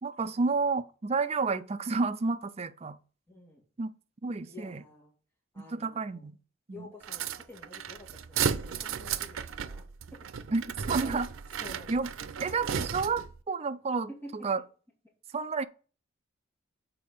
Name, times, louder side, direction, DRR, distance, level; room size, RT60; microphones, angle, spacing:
voice 1, 0.0-3.0 3.8-3.9 4.2-4.8 5.7-6.3 6.7-6.9 10.5-10.6 10.9-11.3 11.9-12.1 12.4-14.6 15.3-15.6, right 4 dB, 30° right, 0.4 m, -30 dB
voice 2, 3.3-3.6 4.4-5.1 5.5-6.3 6.7-9.8 11.0-11.2 11.6-12.3 14.2-14.3, left 1 dB, 10° left, 1.8 m, -49 dB
sound 1, 7.0-13.4, right 7 dB, 90° right, 0.5 m, -34 dB
6.8 x 4.3 x 5.3 m
head